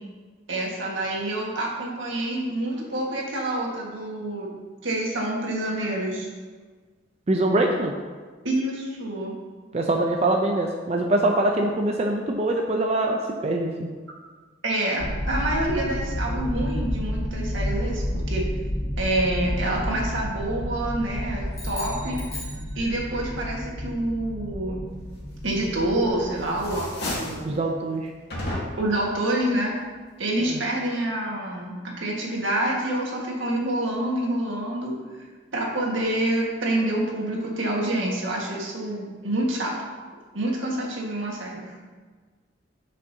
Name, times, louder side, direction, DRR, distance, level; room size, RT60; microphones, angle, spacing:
voice 1, 0.5-4.5 4.8-6.3 8.4-9.3 14.6-18.5 19.0-22.2 22.7-24.9 25.4-27.6 28.8-29.7 30.2-34.9 35.5-39.8 40.3-41.7, right 1 dB, 80° right, -2 dB, 1.6 m, -27 dB
voice 2, 7.3-7.9 9.7-13.9 27.4-28.1 30.5-30.6, right 2 dB, 35° right, 1 dB, 0.5 m, -23 dB
sound 1, 15.0-26.8, equal, 35° left, 0.8 m, -31 dB
sound 2, 21.5-23.3, left 1 dB, 15° left, 1.8 m, -40 dB
sound 3, 25.7-26.2 26.5-27.5 28.3-29.0, left 1 dB, 60° left, 2.0 m, -32 dB
10.5 x 5.4 x 2.8 m, 1.4 s
head